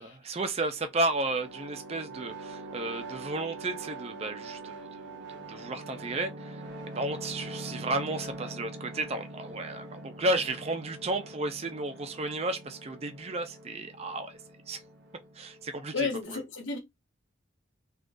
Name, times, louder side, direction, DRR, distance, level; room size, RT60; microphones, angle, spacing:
voice 1, 0.0-6.6 7.0-14.4 14.7-14.8 15.3-16.4, right 2 dB, 30° right, 0.4 m, -33 dB
sound 1, 0.8-16.2, right 2 dB, 60° right, 0.7 m, -44 dB
voice 2, 15.9-16.8, left 4 dB, 75° left, 0.8 m, -31 dB
3.6 x 2.4 x 2.5 m
head